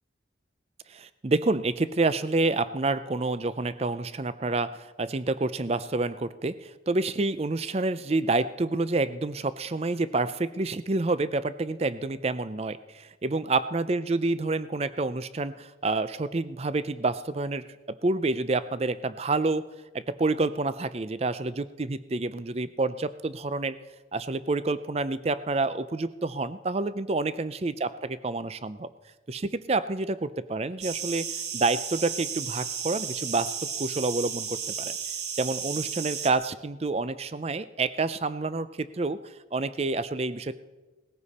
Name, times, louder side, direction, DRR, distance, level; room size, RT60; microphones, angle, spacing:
voice 1, 0.9-19.7 19.9-23.8 24.1-28.9 29.3-34.9 35.3-40.5, right 3 dB, 35° right, 14 dB, 0.5 m, -28 dB
sound 1, 30.8-36.3, right 7 dB, 60° right, 1.3 m, -34 dB
19.0 x 15.0 x 4.2 m, 1.2 s
head